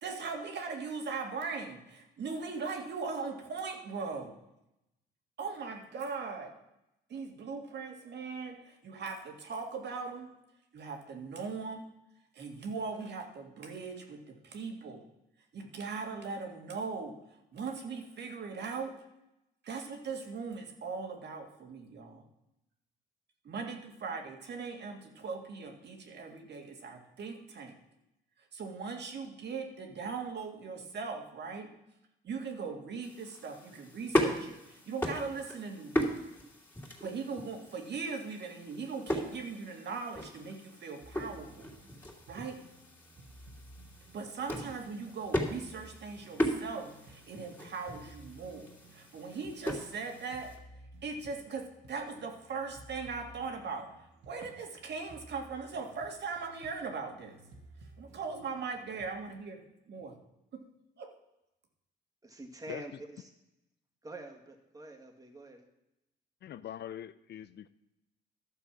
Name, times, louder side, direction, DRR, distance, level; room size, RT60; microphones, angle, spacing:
voice 1, 0.0-4.3 5.4-6.5 7.1-10.3 10.7-11.8 12.3-15.0 15.5-17.2 17.5-19.0 19.6-22.2 23.4-27.8 28.5-31.7 32.2-36.1 37.0-41.7 42.3-42.6 44.1-50.5 51.0-57.4 58.0-59.6 59.9-60.1 60.5-60.6 61.0-61.1, right 4 dB, 60° right, 3 dB, 1.9 m, -39 dB
sound 1, 33.0-50.6, equal, 10° left, 2.8 m, -37 dB
sound 2, 41.0-59.1, right 1 dB, 75° right, 1.9 m, -56 dB
voice 2, 62.2-63.3 64.0-65.7, right 1 dB, 15° right, 2 dB, 2.0 m, -46 dB
voice 3, 66.4-67.7, left 10 dB, 60° left, 14 dB, 0.5 m, -42 dB
12.0 x 6.9 x 6.0 m, 0.87 s
cardioid pair, 90°, 20 cm